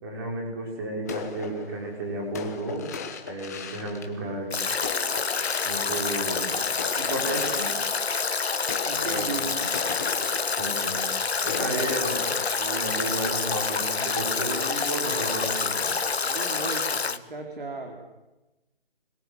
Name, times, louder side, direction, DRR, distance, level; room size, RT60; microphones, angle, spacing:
voice 1, 0.0-2.8 3.2-4.5 5.6-7.7 9.0-9.4 10.6-11.0 11.4-16.0, right 2 dB, 20° right, 0 dB, 5.8 m, -33 dB
sound 1, 1.1-6.4 6.8-13.9, left 5 dB, 15° left, 1.3 m, -38 dB
Stream / Drip / Trickle dribble, 4.5-17.2, left 5 dB, 80° left, 1.8 m, -27 dB
voice 2, 8.9-9.7 16.2-18.0, right 3 dB, 55° right, 4 dB, 4.1 m, -36 dB
27.0 x 21.5 x 8.1 m, 1.0 s
hypercardioid pair, 175°, 31 cm